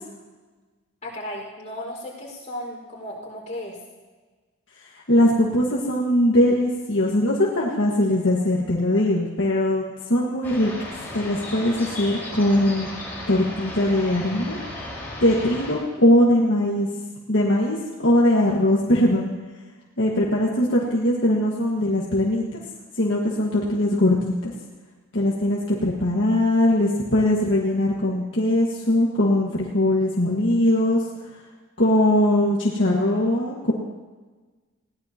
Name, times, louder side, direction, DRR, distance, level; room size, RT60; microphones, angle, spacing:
voice 1, 1.0-3.8, left 1 dB, 35° left, -4 dB, 5.2 m, -35 dB
voice 2, 4.9-10.7 11.1-12.9 13.3-14.6 15.2-16.9 17.3-19.3 20.0-22.6 23.0-24.5 25.1-31.0 31.8-33.7, left 1 dB, 60° left, -4 dB, 1.8 m, -21 dB
sound 1, 10.4-15.7, left 1 dB, 10° left, 5.1 m, -35 dB
21.0 x 17.5 x 3.0 m, 1.3 s
head